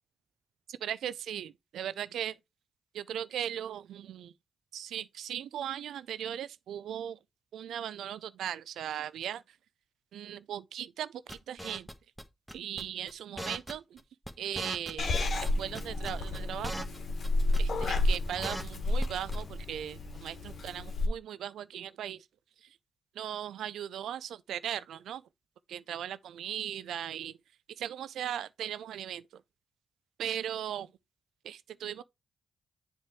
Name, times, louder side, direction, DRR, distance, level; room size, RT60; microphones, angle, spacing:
voice 1, 0.7-2.4 2.9-4.3 4.7-7.2 7.5-9.4 10.1-11.9 12.5-14.0 14.4-16.9 17.6-22.2 23.2-25.2 25.7-27.4 27.8-29.2 30.2-30.9 31.4-32.0, right 10 dB, 80° right, 0.3 m, -38 dB
sound 1, 11.3-12.2 12.5-12.8 13.1-13.2 13.4-14.0 14.3-14.4 14.6-15.5 15.7-17.0 17.2-17.3 17.5-17.9 18.1-19.1 19.3-19.4, equal, ahead, 1.2 m, -39 dB
Purr / Meow, 15.0-21.1, left 2 dB, 60° left, 1.3 m, -31 dB
7.3 x 3.3 x 4.5 m
hypercardioid pair, 40°, 0 cm